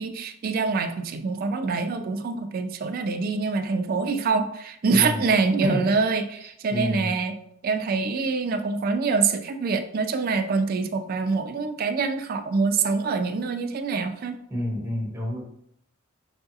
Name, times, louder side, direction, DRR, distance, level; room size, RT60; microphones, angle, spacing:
voice 1, 0.0-7.3 7.6-14.4, right 4 dB, 45° right, 8 dB, 0.3 m, -25 dB
voice 2, 4.9-5.3 5.6-5.9 6.7-7.1 14.5-15.4, equal, 15° right, -3 dB, 1.1 m, -28 dB
4.7 x 2.3 x 2.7 m, 0.74 s
head